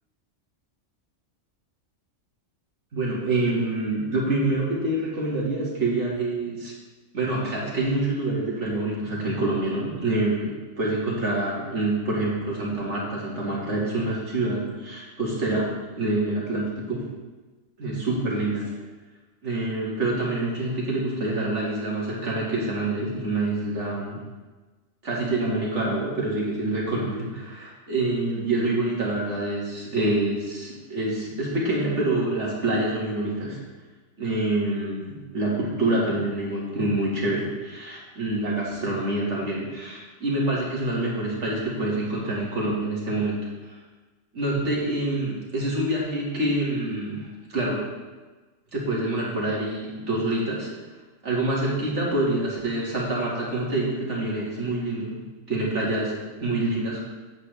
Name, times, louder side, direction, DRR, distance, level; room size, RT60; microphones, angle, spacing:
voice 1, 2.9-6.7 7.1-17.1 17.8-18.7 19.4-24.2 25.0-33.6 34.2-43.7 44.3-47.9 48.7-50.7 51.2-55.2 55.5-57.0, right 2 dB, 65° right, -4 dB, 2.3 m, -26 dB
8.4 x 7.6 x 3.4 m, 1.3 s
omnidirectional pair, 1.3 m